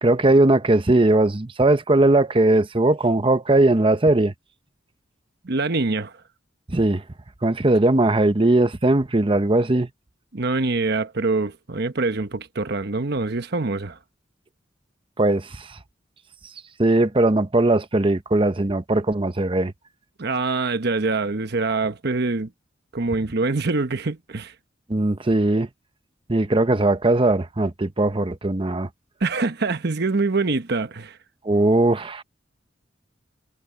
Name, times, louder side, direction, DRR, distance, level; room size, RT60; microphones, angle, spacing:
voice 1, 0.0-4.3 6.7-7.0 7.4-9.9 15.2-15.8 16.8-19.7 24.9-25.7 26.3-28.9 31.4-32.2, right 2 dB, 30° right, 0.8 m, -19 dB
voice 2, 5.4-6.1 10.3-14.0 20.2-22.5 22.9-24.5 29.2-31.2, right 3 dB, 60° right, 1.1 m, -24 dB
head